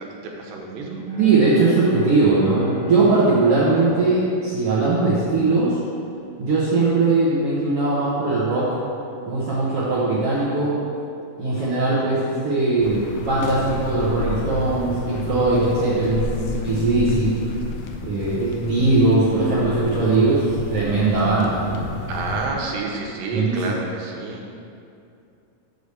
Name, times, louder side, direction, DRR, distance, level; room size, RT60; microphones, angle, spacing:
voice 1, 0.0-1.0 18.4-18.5 22.1-24.4, right 3 dB, 85° right, 0 dB, 2.7 m, -29 dB
Bowed string instrument, 1.0-5.6, right 1 dB, 45° right, 2.1 m, -34 dB
voice 2, 1.2-5.8 6.4-8.8 9.3-10.8 11.4-17.4 18.0-21.9 23.3-23.5, right 3 dB, 65° right, -8 dB, 1.6 m, -20 dB
sound 1, 12.8-22.5, left 3 dB, 75° left, 2.0 m, -31 dB
6.7 x 4.9 x 6.8 m, 2.5 s
omnidirectional pair, 3.9 m